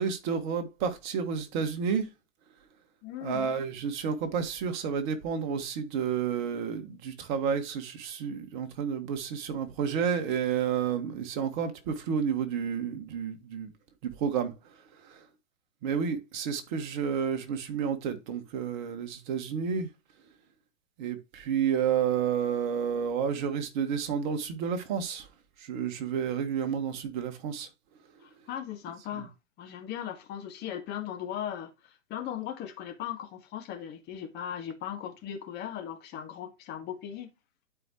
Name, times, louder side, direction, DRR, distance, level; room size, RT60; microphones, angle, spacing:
voice 1, 0.0-2.1 3.2-13.7 14.2-14.5 15.1-15.2 15.8-19.9 21.0-25.3 25.7-27.7 29.1-29.3, right 7 dB, 35° right, 1.8 m, -30 dB
voice 2, 3.0-3.4 28.2-29.3 29.6-31.7 32.1-37.3, left 10 dB, 25° left, 1.9 m, -38 dB
12.0 x 5.0 x 3.1 m
figure-of-eight pair, 115°, 39 cm